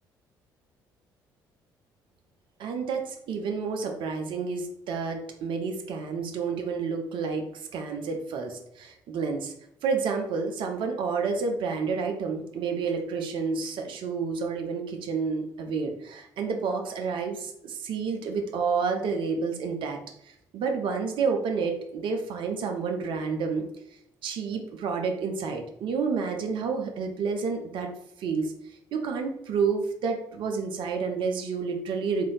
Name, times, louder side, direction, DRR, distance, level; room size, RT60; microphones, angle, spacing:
voice 1, 2.6-9.5 9.8-20.0 20.2-23.6 24.2-27.9 28.2-28.5 28.9-32.3, right 5 dB, 50° right, 4 dB, 0.6 m, -29 dB
3.3 x 2.7 x 3.7 m, 0.75 s
figure-of-eight pair, 45°, 11 cm